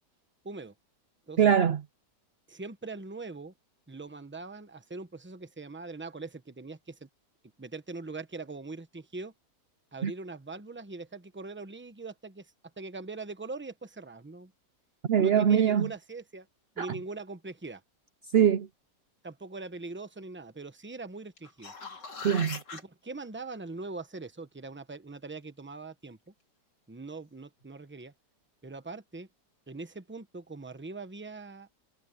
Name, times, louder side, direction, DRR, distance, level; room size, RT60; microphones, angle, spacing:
voice 1, 1.4-1.8 10.0-10.1 15.1-15.9 16.8-16.9 18.3-18.7 22.2-22.6, right 8 dB, 80° right, 0.5 m, -22 dB
voice 2, 2.5-3.5 3.9-7.1 7.6-9.3 9.9-14.5 15.2-16.5 16.7-17.8 19.2-21.7 22.7-26.3 26.9-28.1 28.6-29.3 29.7-31.7, right 3 dB, 10° right, 0.7 m, -42 dB
sound 1, 21.4-22.8 27.6-27.7, left 4 dB, 85° left, 3.9 m, -41 dB
omnidirectional pair, 1.8 m